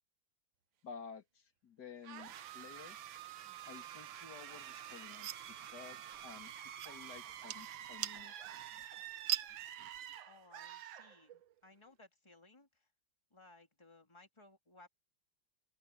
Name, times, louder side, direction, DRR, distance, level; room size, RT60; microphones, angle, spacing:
voice 1, 0.8-3.0 3.7-5.3 5.7-6.5 6.8-8.5 9.1-9.2 9.8-9.9, left 6 dB, 60° left, 3.0 m, -53 dB
sound 1, 2.0-11.6, right 11 dB, 90° right, 1.7 m, -49 dB
sound 2, 4.5-10.2, right 13 dB, 65° right, 1.1 m, -44 dB
voice 2, 10.2-12.9 13.3-14.9, left 2 dB, 15° left, 3.3 m, -61 dB
open air
omnidirectional pair, 2.0 m